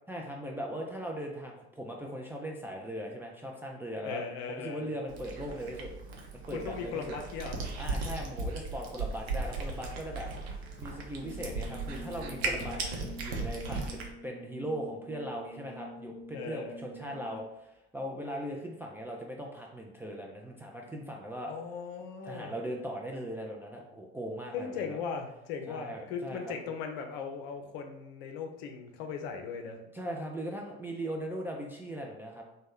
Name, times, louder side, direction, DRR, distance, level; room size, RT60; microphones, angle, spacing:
voice 1, 0.1-4.2 4.5-5.9 6.3-7.2 7.8-10.3 10.8-12.9 13.2-21.5 22.2-25.0 25.7-26.5 29.9-32.4, equal, 5° right, -1 dB, 0.3 m, -39 dB
voice 2, 4.0-4.9 6.5-7.6 16.3-16.8 21.5-22.5 24.5-29.8, left 6 dB, 60° left, 4 dB, 0.6 m, -38 dB
Cat, 5.1-14.1, right 3 dB, 65° right, 0.7 m, -37 dB
Brass instrument, 11.2-17.6, right 1 dB, 45° right, 1.1 m, -47 dB
3.0 x 2.2 x 3.5 m, 0.85 s
figure-of-eight pair, 65°, 32 cm